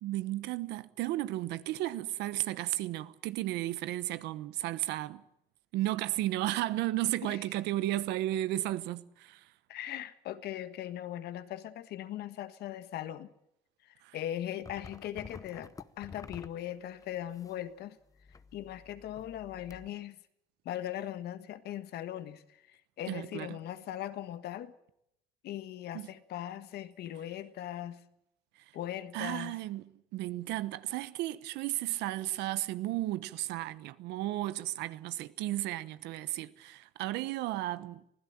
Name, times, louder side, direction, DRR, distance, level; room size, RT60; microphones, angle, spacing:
voice 1, 0.0-5.2 5.7-9.4 14.0-14.2 23.1-23.6 25.9-26.1 29.1-38.0, right 15 dB, 90° right, 1.1 m, -34 dB
voice 2, 9.7-13.3 13.8-15.7 16.0-18.0 18.5-20.1 20.6-24.7 25.4-28.0 28.7-29.6, left 12 dB, 70° left, 1.5 m, -39 dB
sound 1, 14.6-17.7 18.1-19.9, left 4 dB, 20° left, 0.9 m, -51 dB
25.0 x 16.0 x 8.9 m
cardioid pair, 110°, 17 cm